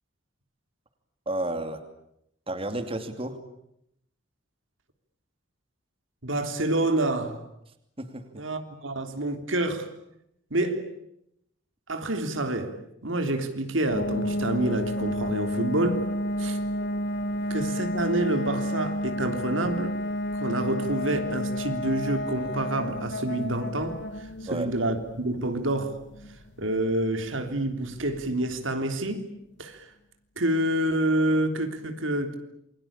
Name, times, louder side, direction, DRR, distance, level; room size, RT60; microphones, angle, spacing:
voice 1, 1.3-1.8 2.5-3.4 8.0-8.4 24.5-24.7, right 1 dB, 30° right, 2.7 m, -32 dB
voice 2, 6.2-7.4 8.3-9.9 10.5-10.9 11.9-12.7 13.0-16.0 16.4-16.6 17.5-19.9 20.3-24.0 24.4-26.0 26.6-29.3 29.6-29.9 30.4-32.3, right 1 dB, 90° right, 3.4 m, -27 dB
sound 1, 13.9-28.5, equal, 60° left, 1.4 m, -31 dB
28.0 x 23.5 x 8.8 m
head